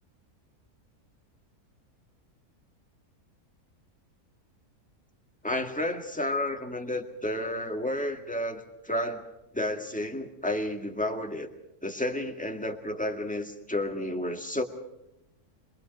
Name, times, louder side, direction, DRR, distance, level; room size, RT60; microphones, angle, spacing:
voice 1, 5.4-9.3 9.5-11.5 11.8-14.6, left 1 dB, 5° left, 4 dB, 1.8 m, -31 dB
26.0 x 22.0 x 5.3 m, 0.90 s
omnidirectional pair, 1.6 m